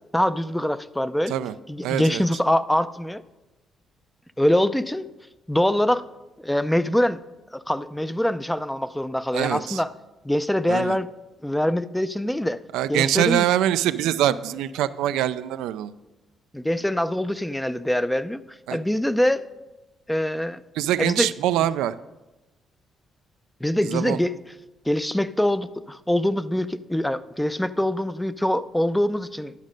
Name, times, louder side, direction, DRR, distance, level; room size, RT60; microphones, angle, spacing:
voice 1, 0.1-1.3 1.7-3.2 4.4-5.1 5.5-6.1 6.4-7.2 7.5-9.9 10.2-11.1 11.4-12.6 12.9-13.5 16.5-18.4 18.7-19.4 20.1-20.6 21.0-21.3 23.6-24.3 24.9-29.5, left 1 dB, 5° left, 14 dB, 0.4 m, -24 dB
voice 2, 1.8-2.2 9.3-9.8 10.7-11.0 12.7-15.9 18.7-18.8 20.8-22.0 23.8-24.2, right 12 dB, 90° right, 13 dB, 0.3 m, -24 dB
11.0 x 6.3 x 5.2 m, 1.0 s
cardioid pair, 75°, 0 cm